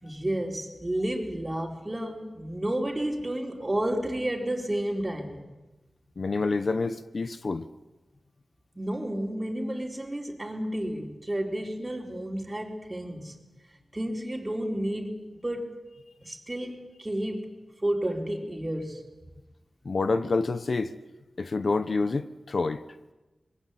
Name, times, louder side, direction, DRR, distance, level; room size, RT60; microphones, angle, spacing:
voice 1, 0.0-5.5 8.8-13.4 13.9-15.8 16.2-19.1, right 1 dB, 25° right, 4.2 m, -31 dB
voice 2, 6.2-7.7 19.8-20.9 21.4-22.8, left 3 dB, 65° left, 1.2 m, -27 dB
25.0 x 21.5 x 8.3 m
cardioid pair, 50°, 0 cm